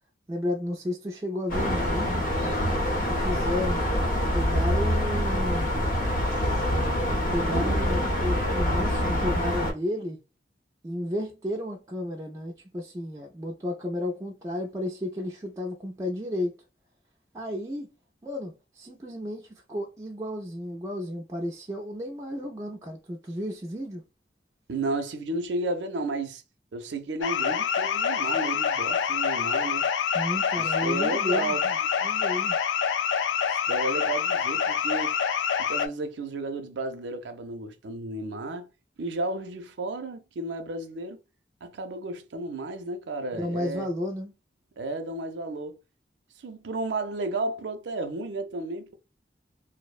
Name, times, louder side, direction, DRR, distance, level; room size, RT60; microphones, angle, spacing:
voice 1, 0.3-2.6 3.1-3.8 4.3-5.8 7.3-10.2 10.8-16.5 17.3-17.9 18.2-24.0 30.1-31.8 32.0-32.6 43.4-44.3, left 1 dB, 20° right, 0.3 m, -32 dB
sound 1, 1.5-9.7, equal, 50° left, 0.7 m, -25 dB
voice 2, 24.7-26.4 26.7-29.9 30.6-31.6 33.5-35.1 35.6-38.7 39.0-41.2 41.6-43.9 44.8-45.8 46.4-48.9, right 2 dB, 80° right, 0.5 m, -33 dB
sound 2, 27.2-35.9, left 7 dB, 85° left, 0.3 m, -26 dB
2.5 x 2.0 x 2.3 m
head